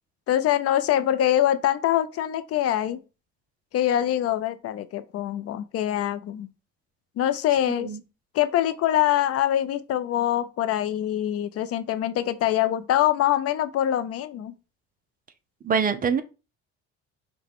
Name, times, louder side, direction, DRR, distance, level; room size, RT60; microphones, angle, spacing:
voice 1, 0.3-3.0 3.7-6.5 7.2-7.9 8.3-14.5, left 12 dB, 55° left, 0.5 m, -24 dB
voice 2, 7.7-8.0 15.6-16.2, right 6 dB, 30° right, 0.5 m, -24 dB
5.7 x 2.2 x 3.6 m
cardioid pair, 115°, 29 cm